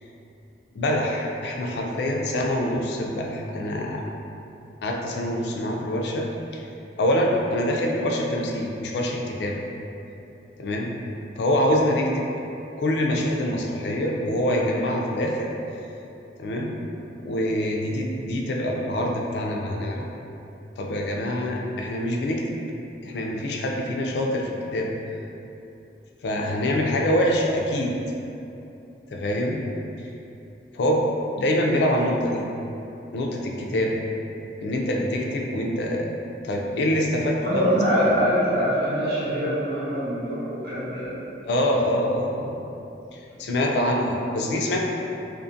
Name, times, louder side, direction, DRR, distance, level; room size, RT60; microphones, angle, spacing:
voice 1, 0.7-4.0 4.8-6.6 7.0-9.6 10.6-10.9 11.4-12.3 12.8-15.5 16.4-16.8 17.2-20.1 20.8-22.6 23.0-25.0 26.2-28.0 29.1-29.6 30.7-31.1 31.3-32.5 33.1-34.0 34.6-36.1 36.4-37.7 38.0-38.2 41.5-42.6 43.1-44.9, left 1 dB, 70° left, 0 dB, 0.3 m, -25 dB
voice 2, 37.4-41.2, equal, 60° right, -11 dB, 1.0 m, -24 dB
2.5 x 2.4 x 2.5 m, 2.8 s
head